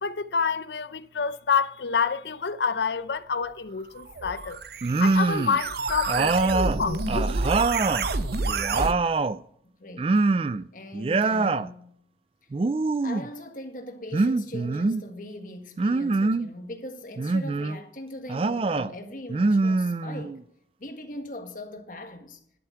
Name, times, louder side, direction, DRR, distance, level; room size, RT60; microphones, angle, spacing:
voice 1, 0.0-4.6 5.0-7.4, left 6 dB, 80° left, 0.7 m, -28 dB
sound 1, 4.0-8.9, right 3 dB, 65° right, 0.7 m, -29 dB
sound 2, 4.8-5.6 6.1-8.1 8.4-9.4 10.0-10.7 10.9-11.7 12.5-13.3 14.1-15.0 15.8-16.5 17.2-17.8 18.3-18.9 19.3-20.4, right 3 dB, 30° right, 0.3 m, -24 dB
voice 2, 9.6-10.2 10.7-11.9 13.0-20.4 20.8-22.4, left 1 dB, 50° left, 1.7 m, -40 dB
11.0 x 8.0 x 5.8 m
head